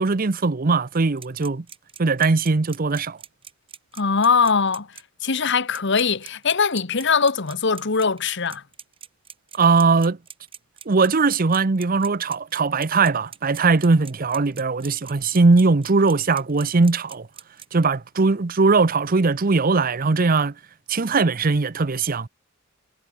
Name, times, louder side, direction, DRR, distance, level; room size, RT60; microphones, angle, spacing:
voice 1, 0.0-1.6 2.0-3.2 9.5-10.2 10.9-17.3 17.7-20.5 20.9-22.3, right 4 dB, 45° right, 0.7 m, -20 dB
sound 1, 1.0-17.7, right 7 dB, 25° right, 6.9 m, -42 dB
voice 2, 4.0-4.9 5.2-8.6, left 5 dB, 60° left, 1.3 m, -21 dB
head